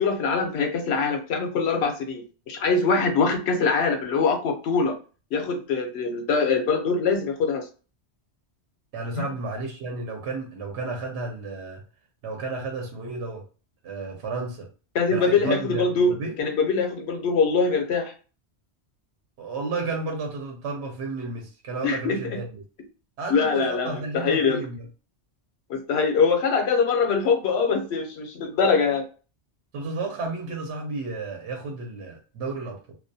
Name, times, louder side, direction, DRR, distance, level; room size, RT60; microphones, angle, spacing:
voice 1, 0.0-4.9 5.3-7.6 9.2-9.3 14.9-18.1 21.8-22.2 23.3-24.6 25.7-29.0, left 4 dB, 70° left, 5 dB, 0.9 m, -23 dB
voice 2, 8.9-11.8 12.2-13.4 13.8-14.7 15.1-16.4 19.4-22.6 23.2-24.8 29.7-32.9, right 3 dB, 80° right, 2 dB, 0.9 m, -32 dB
2.3 x 2.1 x 2.6 m, 0.36 s
omnidirectional pair, 1.1 m